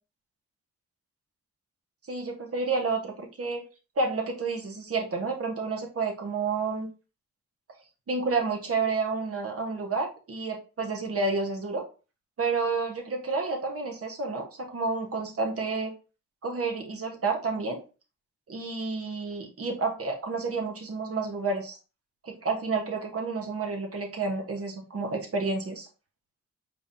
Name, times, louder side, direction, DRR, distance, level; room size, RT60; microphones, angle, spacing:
voice 1, 2.1-3.6 4.0-6.9 8.1-11.8 12.4-15.9 16.4-17.8 18.5-21.8 22.2-25.9, right 4 dB, 50° right, 2 dB, 1.3 m, -30 dB
4.7 x 3.6 x 2.7 m, 0.33 s
cardioid pair, 80°, 29 cm